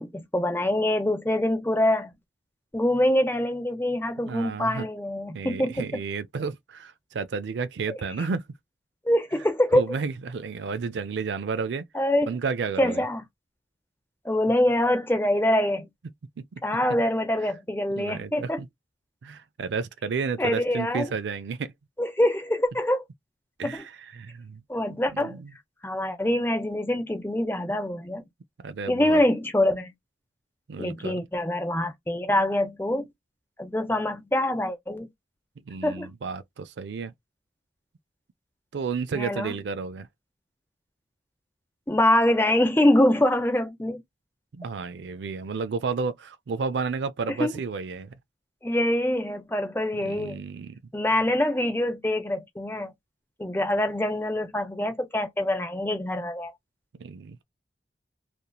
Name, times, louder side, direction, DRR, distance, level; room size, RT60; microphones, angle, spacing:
voice 1, 0.0-2.1 2.7-5.9 7.9-8.0 9.0-9.8 11.9-12.3 12.8-13.2 14.2-15.9 16.6-18.6 20.4-21.1 22.0-23.0 23.6-23.8 24.7-25.4 25.8-28.2 28.9-29.9 30.8-33.1 33.6-35.1 35.8-36.1 39.1-39.6 41.9-44.0 47.3-47.5 48.6-50.4 50.9-52.9 53.4-56.5, left 1 dB, 10° left, 0.6 m, -24 dB
voice 2, 4.2-4.9 5.3-8.4 9.7-11.9 12.3-13.0 16.4-16.6 17.9-18.7 19.2-21.7 23.6-24.6 25.1-25.5 28.6-29.2 30.7-31.2 35.7-37.1 38.7-40.1 44.5-48.1 50.0-50.7 57.0-57.4, right 5 dB, 80° right, 0.4 m, -32 dB
2.9 x 2.5 x 2.2 m
head